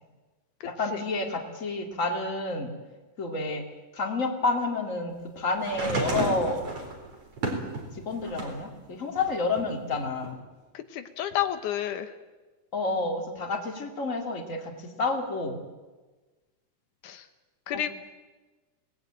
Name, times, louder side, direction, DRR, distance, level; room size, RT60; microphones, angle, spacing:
voice 1, 0.6-2.7 3.2-3.6 3.9-6.7 7.4-7.5 7.9-10.4 12.7-15.7 17.7-17.9, left 3 dB, 25° left, 3 dB, 2.8 m, -30 dB
sound 1, 5.6-8.7 9.2-10.3 11.3-11.4, right 2 dB, 50° right, 5.2 m, -33 dB
voice 2, 10.7-12.1 17.0-17.3 17.7-17.9, left 11 dB, 80° left, 9 dB, 2.6 m, -30 dB
26.0 x 19.0 x 9.0 m, 1.2 s
omnidirectional pair, 3.6 m